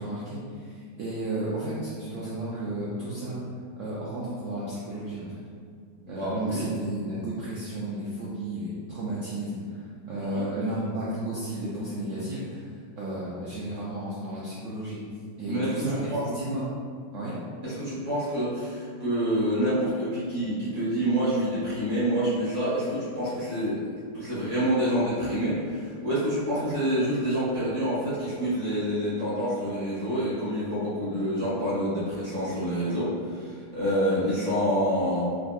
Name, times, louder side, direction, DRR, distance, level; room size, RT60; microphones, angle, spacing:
voice 1, 0.0-3.4 3.8-5.4 6.1-12.7 13.0-15.0 15.4-16.0 16.3-16.6 17.1-17.4, right 1 dB, 90° right, -8 dB, 0.6 m, -33 dB
voice 2, 6.0-6.7 10.2-10.5 15.5-16.2 17.6-23.8 24.1-35.2, equal, 30° right, -10 dB, 0.8 m, -27 dB
3.5 x 2.5 x 2.2 m, 2.1 s
omnidirectional pair, 1.8 m